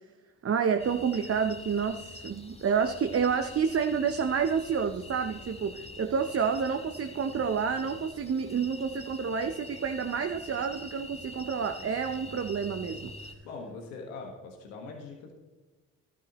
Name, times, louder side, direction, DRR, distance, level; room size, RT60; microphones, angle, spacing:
voice 1, 0.4-13.1, right 6 dB, 35° right, 6 dB, 0.7 m, -29 dB
sound 1, 0.8-13.3, left 2 dB, 15° left, 1.5 m, -45 dB
voice 2, 13.4-15.3, left 3 dB, 85° left, 1 dB, 1.6 m, -42 dB
12.5 x 12.0 x 3.0 m, 1.2 s
hypercardioid pair, 50°, 40 cm